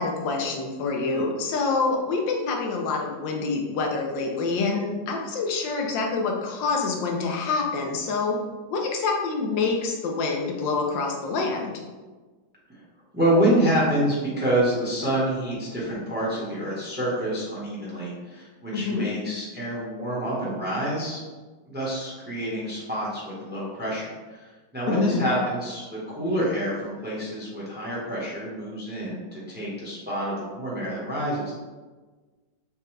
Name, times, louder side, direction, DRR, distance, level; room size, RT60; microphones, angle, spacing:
voice 1, 0.0-8.4 8.7-11.7 18.7-19.1 24.9-25.2, left 4 dB, 90° left, 1 dB, 1.4 m, -26 dB
voice 2, 13.1-21.2 21.6-31.5, right 1 dB, 10° right, -6 dB, 0.7 m, -27 dB
6.5 x 2.2 x 3.2 m, 1.3 s
omnidirectional pair, 1.9 m